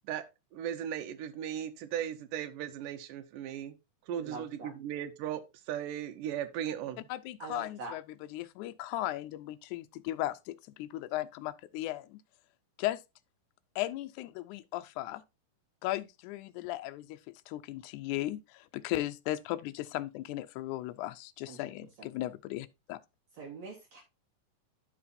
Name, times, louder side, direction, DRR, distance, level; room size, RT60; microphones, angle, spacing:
voice 1, 0.5-3.8 4.1-5.4 5.7-7.1, right 10 dB, 75° right, 2.4 m, -37 dB
voice 2, 4.2-4.7 7.4-7.9 21.5-21.6 22.0-22.1 23.3-24.0, right 3 dB, 60° right, 2.2 m, -44 dB
voice 3, 7.1-8.0 8.3-12.2 12.8-13.0 13.7-15.2 15.8-17.2 17.5-23.0, left 15 dB, 80° left, 1.8 m, -36 dB
11.0 x 5.8 x 2.6 m
omnidirectional pair, 3.9 m